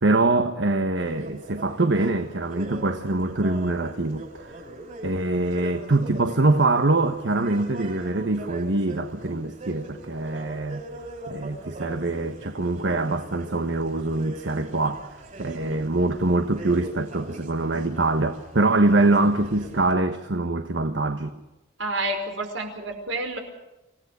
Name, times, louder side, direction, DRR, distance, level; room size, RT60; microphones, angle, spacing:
voice 1, 0.0-4.6 5.0-10.8 11.3-21.3, right 2 dB, 65° right, 1.3 m, -24 dB
sound 1, 1.0-19.9, right 1 dB, 40° right, 6.2 m, -41 dB
voice 2, 21.8-23.4, right 2 dB, 80° right, 5.2 m, -29 dB
27.5 x 17.0 x 6.9 m
head